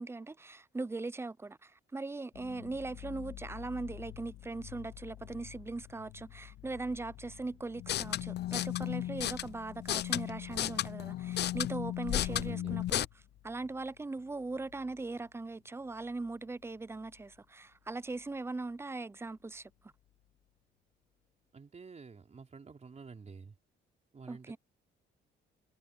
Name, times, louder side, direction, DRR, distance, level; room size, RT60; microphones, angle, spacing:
voice 1, 0.0-13.1 13.4-19.7 24.3-24.6, right 3 dB, 10° right, 0.5 m, -40 dB
sound 1, 2.3-17.4 17.7-18.8 19.2-19.3 19.6-20.3, left 13 dB, 85° left, 1.8 m, -53 dB
sound 2, 7.8-13.1, left 13 dB, 60° left, 0.4 m, -34 dB
voice 2, 12.3-12.8 21.5-23.5 24.1-24.6, right 5 dB, 35° right, 3.7 m, -48 dB
cardioid pair, 90°, 20 cm